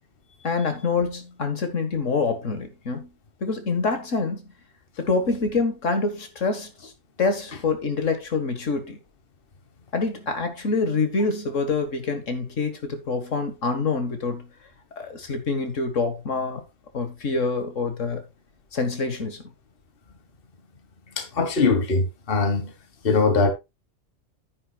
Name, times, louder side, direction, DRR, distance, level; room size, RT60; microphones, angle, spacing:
voice 1, 0.4-3.1 3.4-4.4 5.0-6.9 7.2-9.0 9.9-14.5 15.0-16.6 16.9-18.2 18.7-19.4, left 4 dB, 75° left, 1.9 m, -26 dB
voice 2, 21.2-22.7 23.0-23.5, left 4 dB, 45° left, 1.6 m, -21 dB
10.0 x 9.8 x 2.3 m
omnidirectional pair, 1.3 m